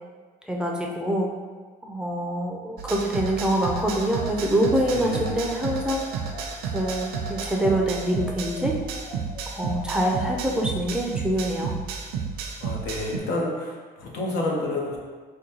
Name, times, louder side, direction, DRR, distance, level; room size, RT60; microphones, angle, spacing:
voice 1, 0.5-1.3 1.8-6.0 6.7-8.8 9.5-11.7, right 1 dB, 5° right, -1 dB, 0.4 m, -25 dB
sound 1, 2.8-13.2, right 6 dB, 70° right, 0.5 m, -32 dB
sound 2, 3.8-10.4, left 1 dB, 50° left, 0.6 m, -42 dB
voice 2, 4.9-5.4 12.6-15.0, left 2 dB, 80° left, -1 dB, 0.8 m, -29 dB
5.0 x 2.2 x 2.9 m, 1.5 s
cardioid pair, 110°, 17 cm